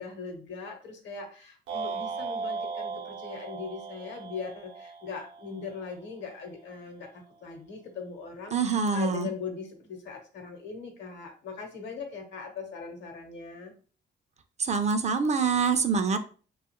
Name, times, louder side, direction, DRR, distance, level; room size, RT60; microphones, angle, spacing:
voice 1, 0.0-13.7, left 5 dB, 65° left, 5 dB, 0.9 m, -40 dB
sound 1, 1.7-6.0, right 4 dB, 80° right, 0.7 m, -37 dB
voice 2, 8.5-9.3 14.6-16.2, right 5 dB, 35° right, 9 dB, 0.4 m, -25 dB
2.7 x 2.3 x 2.9 m, 0.38 s
cardioid pair, 90°, 20 cm